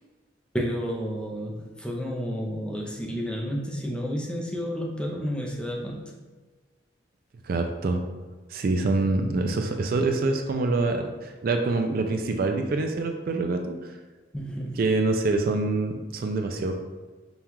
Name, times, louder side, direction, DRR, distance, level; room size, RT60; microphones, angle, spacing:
voice 1, 0.5-6.1 14.3-14.8, equal, 5° left, -2 dB, 0.5 m, -31 dB
voice 2, 7.4-8.0 8.5-13.7 14.8-16.8, right 3 dB, 50° right, 4 dB, 0.3 m, -25 dB
5.4 x 2.3 x 2.9 m, 1.3 s
head